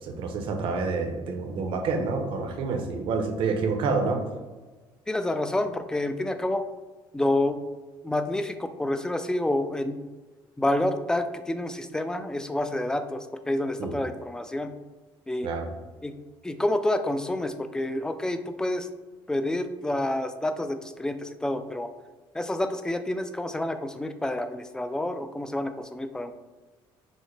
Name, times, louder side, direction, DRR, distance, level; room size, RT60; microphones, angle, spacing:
voice 1, 0.0-4.2 13.8-13.9 15.4-15.7, right 4 dB, 65° right, 4 dB, 0.7 m, -28 dB
voice 2, 5.1-6.6 7.1-7.6 8.0-10.0 10.6-14.7 15.3-15.5 16.0-16.1 16.4-18.9 19.3-21.9 22.3-26.3, left 1 dB, 5° left, 9 dB, 0.3 m, -28 dB
6.2 x 2.1 x 3.2 m, 1.2 s
cardioid pair, 110°, 9 cm